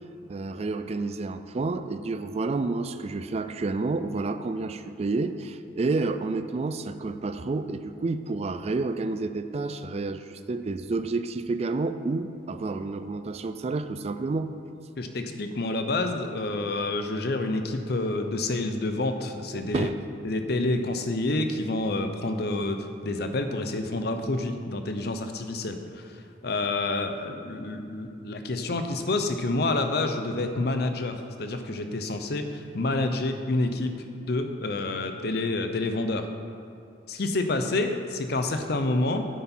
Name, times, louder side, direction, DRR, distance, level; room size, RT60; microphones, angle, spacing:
voice 1, 0.3-14.5 19.5-19.9, right 3 dB, 35° right, 11 dB, 0.4 m, -30 dB
voice 2, 15.0-19.9 20.2-26.1 26.4-33.9 34.3-36.3 37.1-39.3, left 2 dB, 60° left, 7 dB, 0.7 m, -28 dB
9.3 x 8.1 x 4.4 m, 2.7 s
head